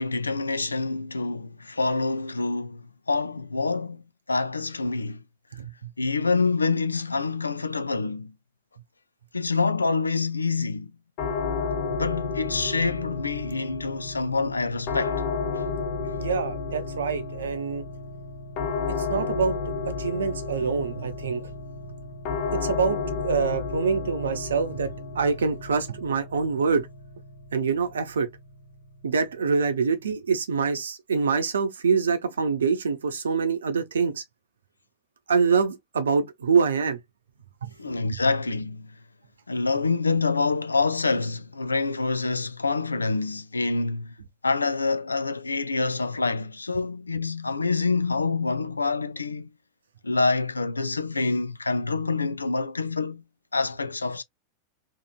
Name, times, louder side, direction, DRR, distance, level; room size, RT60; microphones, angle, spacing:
voice 1, 0.0-4.0 4.3-5.2 6.0-8.3 9.3-10.9 11.9-15.2 37.8-38.9 39.5-44.1 44.4-49.5 50.0-53.2 53.5-54.2, left 3 dB, 80° left, 0.3 m, -26 dB
sound 1, 11.2-30.1, left 4 dB, 45° left, 1.0 m, -33 dB
voice 2, 16.2-17.8 18.9-19.6 19.9-21.5 22.5-26.9 27.5-28.3 29.0-34.2 35.3-37.0 37.6-37.7, right 5 dB, 70° right, 0.6 m, -25 dB
2.9 x 2.8 x 2.3 m
figure-of-eight pair, 90°, 0 cm